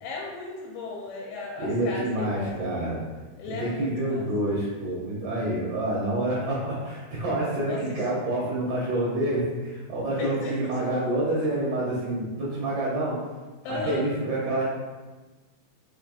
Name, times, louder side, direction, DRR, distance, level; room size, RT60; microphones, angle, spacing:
voice 1, 0.0-2.7 3.4-4.2 7.7-8.0 10.1-10.5 13.6-14.0, left 3 dB, 85° left, -3 dB, 2.6 m, -35 dB
voice 2, 1.6-3.0 3.4-13.2 13.7-14.6, right 1 dB, 90° right, -7 dB, 1.6 m, -28 dB
6.3 x 3.2 x 2.5 m, 1.2 s
omnidirectional pair, 4.6 m